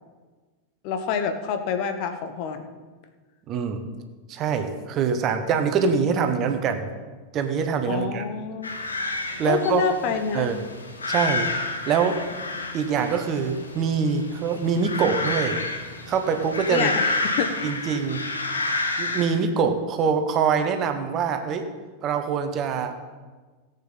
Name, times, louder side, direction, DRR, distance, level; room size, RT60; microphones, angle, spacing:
voice 1, 0.8-2.7 7.9-8.7 9.4-10.5 16.7-17.7, left 6 dB, 45° left, 8 dB, 1.2 m, -27 dB
voice 2, 3.5-3.8 4.3-6.9 7.3-8.2 9.4-9.8 10.3-10.6 11.1-11.5 11.9-12.2 12.7-15.6 16.1-16.9 17.6-18.2 19.0-21.7 22.0-22.9, right 6 dB, 35° right, 7 dB, 1.3 m, -24 dB
sound 1, 8.6-19.4, left 2 dB, 75° left, 1.4 m, -30 dB
17.0 x 8.6 x 4.0 m, 1.3 s
figure-of-eight pair, 90°, 0 cm